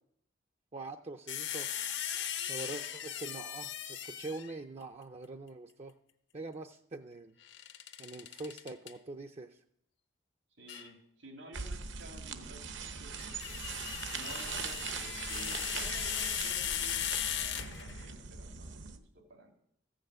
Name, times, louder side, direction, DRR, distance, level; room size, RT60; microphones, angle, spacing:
voice 1, 0.7-1.7 2.5-5.9 6.3-7.4 8.0-9.6, right 2 dB, 35° right, 7 dB, 0.5 m, -44 dB
sound 1, 1.3-4.6 7.5-8.9 10.7-10.9 13.0-18.1, left 10 dB, 65° left, 0.9 m, -38 dB
voice 2, 10.6-13.6 14.1-19.5, right 1 dB, 85° right, 1 dB, 2.6 m, -52 dB
sound 2, 11.5-19.0, right 5 dB, 70° right, 1.0 m, -41 dB
15.0 x 6.5 x 8.0 m, 0.72 s
head